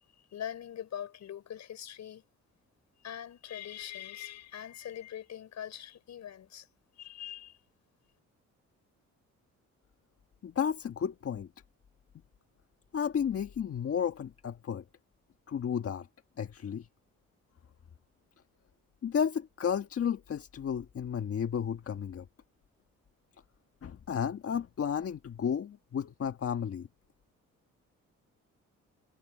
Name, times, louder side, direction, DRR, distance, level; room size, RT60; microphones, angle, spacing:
voice 1, 0.3-2.2 3.0-6.7 7.0-7.6, left 10 dB, 65° left, 5.4 m, -42 dB
voice 2, 10.4-11.5 12.9-14.8 15.5-16.1 16.4-16.9 19.0-22.3 23.8-26.9, left 7 dB, 50° left, 1.6 m, -32 dB
cardioid pair, 90°, 30 cm